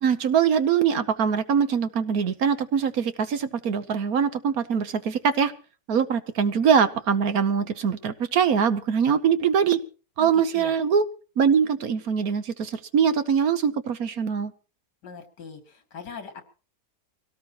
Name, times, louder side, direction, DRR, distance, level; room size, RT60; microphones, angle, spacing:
voice 1, 0.0-5.5 5.9-9.8 10.2-11.0 11.4-14.5, right 7 dB, 60° right, 11 dB, 1.3 m, -23 dB
voice 2, 10.2-10.7 15.0-16.4, left 6 dB, 70° left, 6 dB, 2.9 m, -41 dB
23.5 x 17.5 x 3.0 m, 0.37 s
omnidirectional pair, 1.9 m